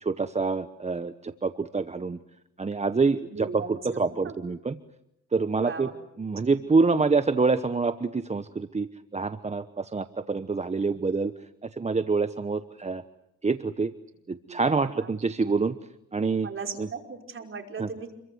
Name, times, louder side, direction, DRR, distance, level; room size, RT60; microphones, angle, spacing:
voice 1, 0.0-2.2 2.6-4.7 5.3-5.9 6.2-11.3 11.6-13.0 13.4-13.9 14.3-15.8 16.1-16.5 16.8-16.9 17.8-17.9, right 4 dB, 20° right, 11 dB, 1.0 m, -26 dB
voice 2, 3.3-4.5 5.6-5.9 6.4-6.5 14.4-15.1 16.4-18.1, right 5 dB, 45° right, 4 dB, 5.2 m, -38 dB
28.5 x 23.5 x 7.9 m, 0.82 s
cardioid pair, 90°, 30 cm